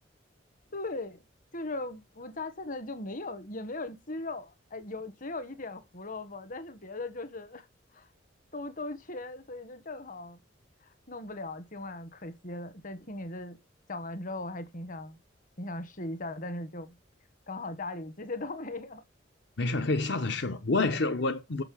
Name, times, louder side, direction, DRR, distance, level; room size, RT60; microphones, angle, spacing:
voice 1, 0.7-1.2 1.5-7.7 7.9-8.1 8.5-10.4 10.8-13.6 13.9-15.2 15.6-17.0 17.5-19.0, left 2 dB, 45° left, 1.5 m, -38 dB
voice 2, 19.6-21.6, left 3 dB, 65° left, 1.0 m, -28 dB
6.8 x 6.6 x 7.0 m
head